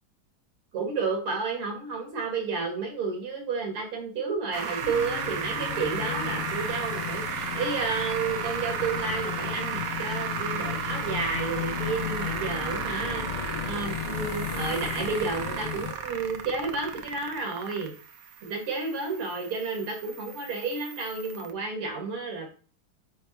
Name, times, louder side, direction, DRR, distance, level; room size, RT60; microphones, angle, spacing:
voice 1, 0.7-17.9 18.4-22.5, right 4 dB, 80° right, 1 dB, 3.0 m, -31 dB
sound 1, 4.5-21.5, right 7 dB, 65° right, 1.3 m, -34 dB
sound 2, 4.8-15.9, left 12 dB, 85° left, 1.6 m, -35 dB
9.3 x 3.5 x 4.4 m, 0.38 s
omnidirectional pair, 2.3 m